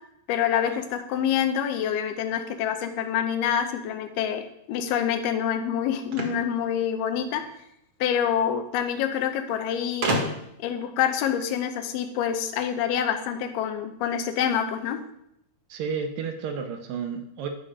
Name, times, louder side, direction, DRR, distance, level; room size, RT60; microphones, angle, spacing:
voice 1, 0.3-4.4 4.7-7.4 8.0-10.3 10.6-15.0, left 9 dB, 90° left, 7 dB, 2.6 m, -26 dB
sound 1, 6.1-7.5 8.6-8.7 8.9-9.0 10.0-10.7, right 2 dB, 55° right, 1.8 m, -30 dB
voice 2, 15.7-17.5, right 6 dB, 75° right, 5 dB, 2.2 m, -31 dB
11.0 x 5.5 x 5.0 m, 0.77 s
omnidirectional pair, 4.5 m